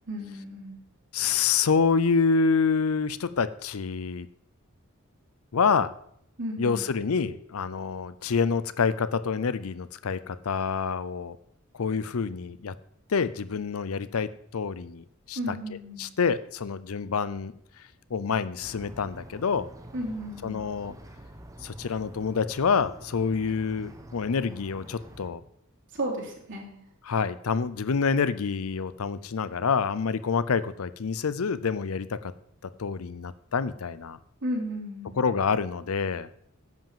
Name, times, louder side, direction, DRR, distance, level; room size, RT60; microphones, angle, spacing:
voice 1, 0.1-0.8 6.4-6.9 15.3-16.1 19.9-20.6 25.9-26.8 34.4-35.2, equal, 60° right, -2 dB, 3.0 m, -34 dB
voice 2, 1.1-4.3 5.5-5.9 6.6-11.4 11.7-12.7 13.1-15.4 16.0-17.5 18.1-19.7 20.4-20.9 21.6-25.4 27.1-32.3 32.6-34.2 35.2-36.3, left 5 dB, 75° left, 15 dB, 0.6 m, -27 dB
sound 1, 18.6-25.3, right 1 dB, 15° right, 1.0 m, -47 dB
10.5 x 5.7 x 7.3 m, 0.69 s
head